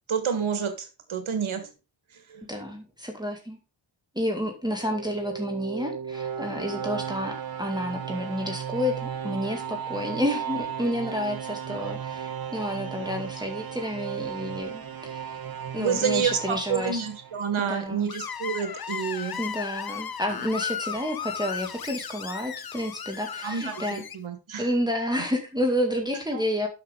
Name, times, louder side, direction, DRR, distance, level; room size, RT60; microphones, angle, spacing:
voice 1, 0.1-1.7 2.3-2.4 15.8-19.4 23.4-24.7 26.3-26.4, right 7 dB, 85° right, 8 dB, 1.6 m, -29 dB
voice 2, 2.5-3.6 4.2-15.4 15.7-17.0 17.6-18.1 19.4-24.0 24.6-26.7, equal, 10° right, 2 dB, 2.0 m, -30 dB
sound 1, 4.6-17.7, right 8 dB, 50° right, 1.2 m, -35 dB
Screech, 18.1-24.2, left 7 dB, 50° left, 0.8 m, -35 dB
12.0 x 5.8 x 3.7 m, 0.29 s
cardioid pair, 55°, 47 cm